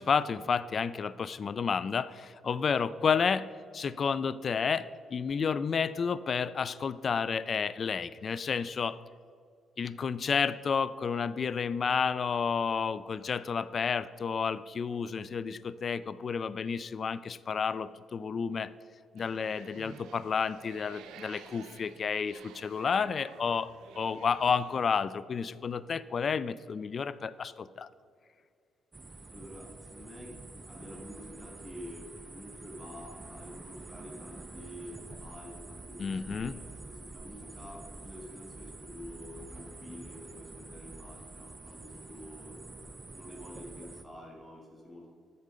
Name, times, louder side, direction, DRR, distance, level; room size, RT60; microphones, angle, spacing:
voice 1, 0.0-3.5 3.7-9.0 9.8-18.7 19.1-27.9 36.0-36.6, left 6 dB, 45° left, 17 dB, 0.3 m, -31 dB
sound 1, 19.2-24.8, right 7 dB, 85° right, 0.7 m, -52 dB
sound 2, 28.9-44.0, right 2 dB, 20° right, 0.6 m, -47 dB
voice 2, 29.3-42.8 43.1-45.1, equal, 10° left, -2 dB, 1.9 m, -48 dB
8.3 x 6.6 x 5.0 m, 2.2 s
cardioid pair, 90°, 0 cm